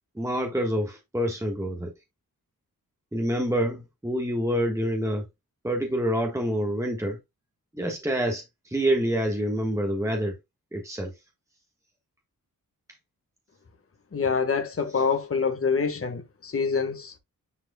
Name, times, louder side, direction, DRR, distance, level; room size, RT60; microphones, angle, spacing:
voice 1, 0.1-1.9 3.1-5.2 5.6-7.2 7.7-10.4 10.7-11.1, equal, 10° right, 1.4 m, -27 dB
voice 2, 14.1-17.1, left 5 dB, 40° left, 1.6 m, -26 dB
9.9 x 4.8 x 2.3 m
wide cardioid pair, 110°, 34 cm